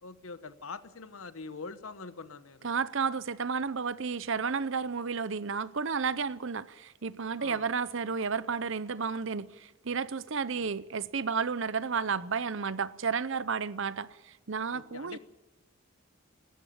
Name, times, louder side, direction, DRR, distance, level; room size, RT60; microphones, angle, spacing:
voice 1, 0.0-2.7 7.4-7.7 10.6-10.7 14.7-15.2, left 4 dB, 75° left, 1.1 m, -44 dB
voice 2, 2.6-15.2, right 5 dB, 60° right, 0.7 m, -32 dB
18.5 x 14.0 x 10.0 m
head